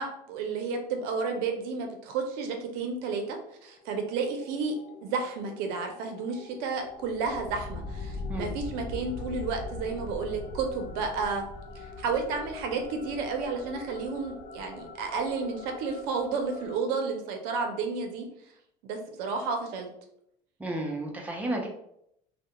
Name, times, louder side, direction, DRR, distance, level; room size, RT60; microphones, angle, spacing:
voice 1, 0.0-3.4 3.6-4.8 5.0-11.4 11.7-18.3 18.9-19.9, right 4 dB, 75° right, 4 dB, 0.5 m, -31 dB
sound 1, 3.6-16.8, left 3 dB, 70° left, 0.4 m, -42 dB
voice 2, 20.6-21.7, right 1 dB, 10° right, 1 dB, 0.5 m, -32 dB
2.3 x 2.1 x 2.8 m, 0.75 s
cardioid pair, 130°, 16 cm